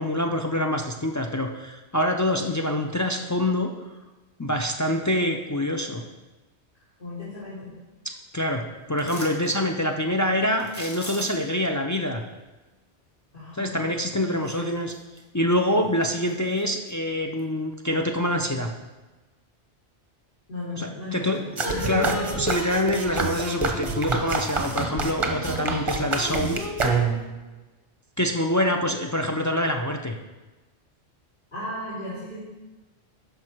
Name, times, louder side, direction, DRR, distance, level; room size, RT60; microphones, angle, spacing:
voice 1, 0.0-3.7 4.4-6.0 8.0-12.2 13.6-14.9 15.3-18.7 20.8-26.6 28.2-30.2, left 1 dB, 30° left, 2 dB, 0.3 m, -26 dB
voice 2, 7.0-7.7 13.3-13.7 14.1-14.7 20.5-22.3 31.5-32.4, left 2 dB, 45° left, -12 dB, 3.4 m, -35 dB
sound 1, 9.0-9.6 10.6-11.6 14.2-14.3 14.8-15.5 15.8-16.9 17.4-17.5, equal, 10° left, 1.3 m, -40 dB
sound 2, 21.6-27.4, right 3 dB, 30° right, 0.8 m, -27 dB
12.0 x 5.1 x 4.5 m, 1.2 s
omnidirectional pair, 1.2 m